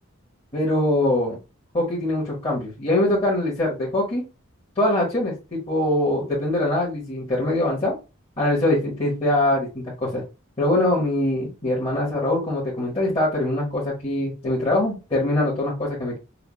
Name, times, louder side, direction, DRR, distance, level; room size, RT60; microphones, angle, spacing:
voice 1, 0.5-1.4 1.7-4.2 4.7-7.9 8.4-10.2 10.6-16.2, left 1 dB, 30° left, -7 dB, 1.5 m, -23 dB
5.7 x 2.4 x 2.3 m, 0.29 s
head